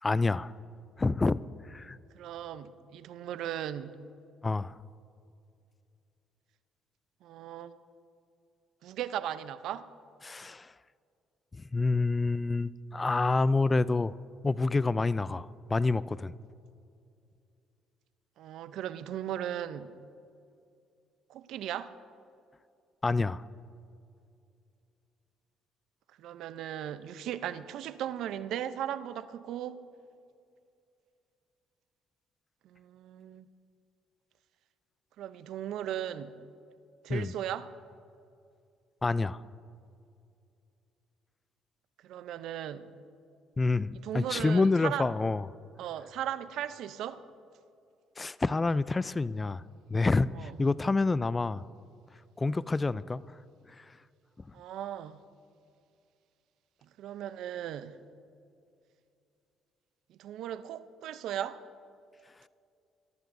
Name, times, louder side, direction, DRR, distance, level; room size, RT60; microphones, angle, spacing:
voice 1, 0.0-0.5 1.0-1.4 1.7-2.0 4.4-4.8 10.2-10.7 11.7-14.1 14.4-16.3 23.0-23.4 37.1-37.3 39.0-39.4 43.6-45.5 48.2-49.6 49.9-51.6 52.4-53.2 53.8-53.9, left 3 dB, 25° left, 19 dB, 0.4 m, -28 dB
voice 2, 2.1-4.0 7.2-7.7 8.8-9.9 18.4-20.0 21.3-21.9 26.2-29.8 32.6-33.4 35.2-36.4 37.0-37.7 42.0-42.9 43.9-45.1 45.8-47.2 50.3-50.5 54.5-55.2 56.8-58.0 60.1-61.6, right 10 dB, 70° right, 13 dB, 0.6 m, -37 dB
23.0 x 13.5 x 2.7 m, 2.5 s
supercardioid pair, 60°, 0 cm